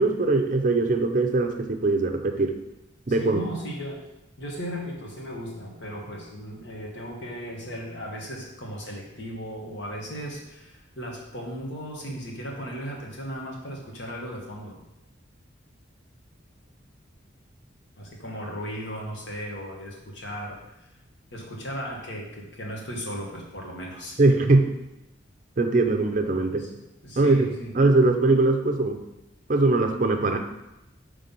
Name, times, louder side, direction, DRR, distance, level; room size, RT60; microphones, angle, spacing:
voice 1, 0.0-2.5 3.1-3.4 24.2-24.7 25.6-26.6 27.2-27.5 27.8-29.0 29.5-30.4, right 2 dB, 40° right, 5 dB, 0.5 m, -21 dB
voice 2, 3.2-4.0 4.4-14.8 18.0-20.6 21.3-24.2 26.6-27.7, equal, 65° left, -1 dB, 1.3 m, -36 dB
5.6 x 3.3 x 5.2 m, 0.92 s
head